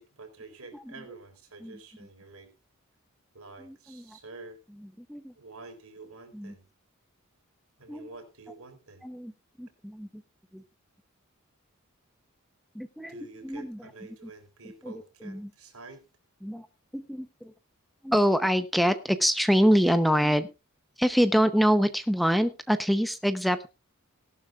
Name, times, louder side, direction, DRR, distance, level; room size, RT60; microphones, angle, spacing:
voice 1, 0.0-2.5 3.3-4.6 5.4-6.6 7.8-9.0 13.1-16.0, right 3 dB, 75° right, 5 dB, 3.9 m, -48 dB
voice 2, 3.6-4.2 4.8-5.3 6.3-6.5 7.9-8.1 9.0-9.3 9.6-10.1 10.5-10.6 12.7-13.9 14.8-14.9 15.2-15.5 16.4-16.7 16.9-17.5 18.0-20.5 21.0-23.7, equal, ahead, 10 dB, 0.7 m, -25 dB
18.5 x 12.0 x 2.4 m, 0.27 s
head